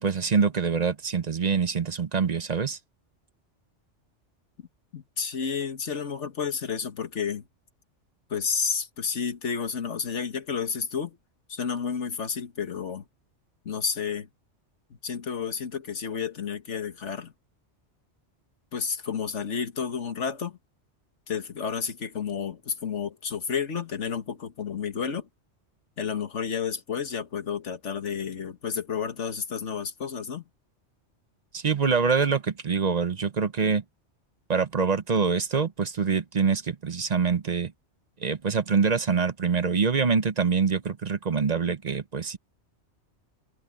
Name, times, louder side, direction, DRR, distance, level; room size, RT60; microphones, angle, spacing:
voice 1, 0.0-2.8 31.5-33.8 34.5-37.7 38.2-42.4, right 5 dB, 40° right, 0.8 m, -25 dB
voice 2, 4.9-7.4 8.3-11.2 11.5-13.0 13.7-14.3 15.0-17.3 18.7-20.6 21.3-25.3 26.0-30.4, left 6 dB, 80° left, 1.8 m, -31 dB
omnidirectional pair, 1.2 m